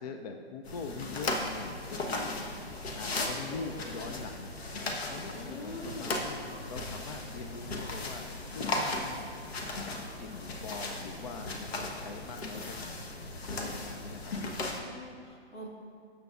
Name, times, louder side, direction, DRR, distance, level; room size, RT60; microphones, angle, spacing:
voice 1, 0.0-2.4 2.9-4.5 5.0-9.3 9.8-13.1 13.5-14.4, left 4 dB, 40° left, 5 dB, 0.5 m, -43 dB
sound 1, 0.7-14.8, left 2 dB, 65° left, 1.3 m, -37 dB
voice 2, 3.5-4.1 5.3-6.3 14.2-15.7, left 1 dB, 85° left, -1 dB, 2.0 m, -44 dB
15.5 x 7.1 x 2.5 m, 2.2 s
hypercardioid pair, 135°, 34 cm